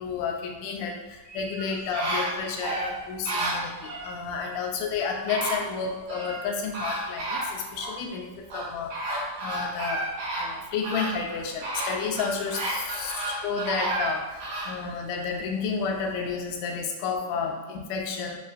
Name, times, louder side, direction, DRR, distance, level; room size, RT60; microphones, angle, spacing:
voice 1, 0.0-10.0 10.4-18.4, left 5 dB, 85° left, 1 dB, 1.5 m, -31 dB
sound 1, 1.3-4.1 4.9-5.0 5.3-6.4 6.7-7.9 8.5-14.7 15.2-15.3, right 2 dB, 80° right, 2.8 m, -32 dB
7.3 x 2.5 x 2.4 m, 1.2 s
omnidirectional pair, 3.6 m